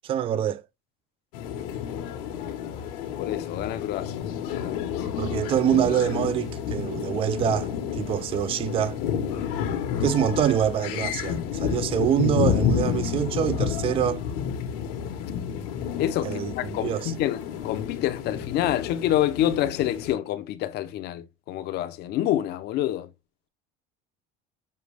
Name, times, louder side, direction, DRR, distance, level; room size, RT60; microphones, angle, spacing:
voice 1, 0.0-0.6 5.2-9.0 10.0-14.2 16.2-17.1, right 10 dB, 30° right, 0.4 m, -25 dB
sound 1, 1.3-20.1, left 8 dB, 80° left, 1.2 m, -30 dB
voice 2, 3.2-4.3 4.5-5.0 16.0-23.1, left 12 dB, 55° left, 0.7 m, -27 dB
6.6 x 2.3 x 3.3 m
cardioid pair, 135°, 20 cm